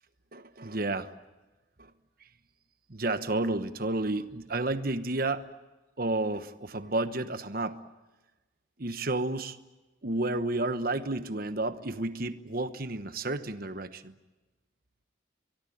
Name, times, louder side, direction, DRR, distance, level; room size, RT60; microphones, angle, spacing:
voice 1, 0.3-1.1 1.8-1.9 2.9-5.4 6.0-7.8 8.8-9.6 10.0-14.1, right 2 dB, 50° right, 11 dB, 1.2 m, -31 dB
24.5 x 22.5 x 8.7 m, 1.1 s
head